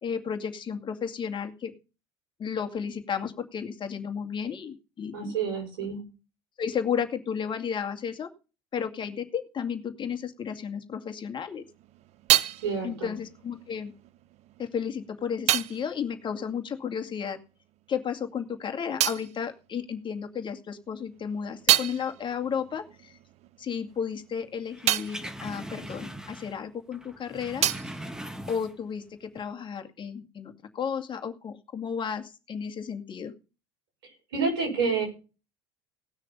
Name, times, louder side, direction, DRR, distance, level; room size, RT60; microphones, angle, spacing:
voice 1, 0.0-1.7 2.4-5.4 6.6-8.3 8.7-11.6 12.8-13.9 14.6-17.4 17.9-23.2 23.6-27.7 28.5-33.3, left 7 dB, 35° left, 5 dB, 2.2 m, -33 dB
voice 2, 5.1-6.0 12.6-13.1 34.0-35.1, right 5 dB, 85° right, 2 dB, 6.1 m, -29 dB
sound 1, 11.5-17.5 17.7-20.4 20.8-26.9 27.1-29.2, right 14 dB, 55° right, 0.8 m, -31 dB
sound 2, 24.7-26.7 26.9-28.9 29.3-29.4, right 1 dB, 5° right, 1.6 m, -40 dB
18.0 x 6.5 x 5.6 m, 0.33 s
hypercardioid pair, 80°, 13 cm